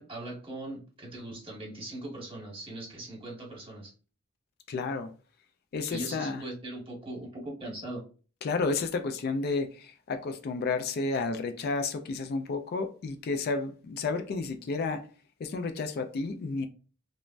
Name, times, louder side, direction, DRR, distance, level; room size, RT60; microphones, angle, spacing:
voice 1, 0.0-3.9 5.9-8.0, right 1 dB, 30° right, 1.1 m, -40 dB
voice 2, 4.7-5.1 5.7-6.4 8.4-15.1 15.4-16.7, left 4 dB, 50° left, 0.3 m, -31 dB
3.2 x 2.1 x 2.4 m
head